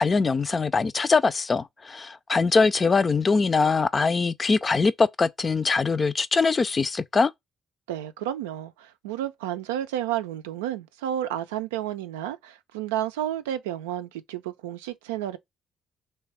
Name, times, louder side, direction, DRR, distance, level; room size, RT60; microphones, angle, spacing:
voice 1, 0.0-7.3, left 4 dB, 35° left, 0.5 m, -22 dB
voice 2, 7.9-15.4, right 11 dB, 85° right, 0.4 m, -31 dB
3.3 x 3.2 x 4.6 m
hypercardioid pair, 45°, 0 cm